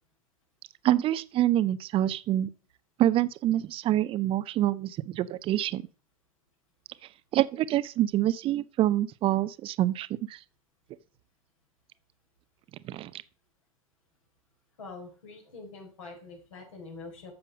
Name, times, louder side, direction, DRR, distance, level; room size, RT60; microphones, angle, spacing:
voice 1, 0.8-2.5 3.0-5.8 7.3-10.4 12.8-13.2, right 13 dB, 30° right, 0.7 m, -26 dB
voice 2, 14.8-17.3, left 3 dB, 60° left, 4.7 m, -45 dB
14.0 x 6.9 x 5.3 m
figure-of-eight pair, 90°, 19 cm